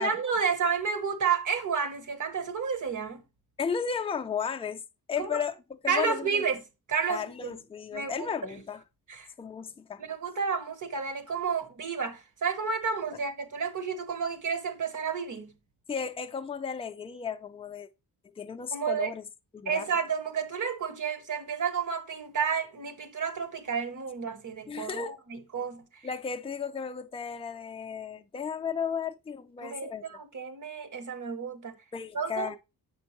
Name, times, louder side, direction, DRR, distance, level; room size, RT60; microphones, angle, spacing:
voice 1, 0.0-3.2 5.2-5.4 5.9-6.6 6.9-7.6 7.9-8.3 9.1-9.3 10.0-15.5 18.7-19.1 19.7-25.8 29.6-31.7 32.1-32.5, right 6 dB, 50° right, 1.1 m, -31 dB
voice 2, 3.6-4.8 5.1-5.5 5.8-6.4 7.1-8.8 9.4-10.0 15.9-17.9 18.4-19.2 19.5-19.9 24.7-25.2 26.0-30.2 31.9-32.6, left 6 dB, 15° left, 0.4 m, -34 dB
7.6 x 5.3 x 3.0 m
wide cardioid pair, 125°, 38 cm